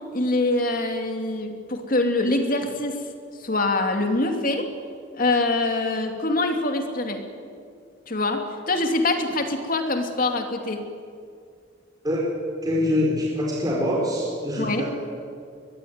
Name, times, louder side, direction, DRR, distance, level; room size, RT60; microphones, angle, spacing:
voice 1, 0.1-3.0 3.4-4.7 5.2-7.2 8.1-10.8 14.6-14.8, left 2 dB, 50° left, 5 dB, 2.7 m, -24 dB
voice 2, 12.6-14.9, left 1 dB, 20° right, -3 dB, 4.8 m, -24 dB
23.0 x 22.5 x 9.6 m, 2.3 s
head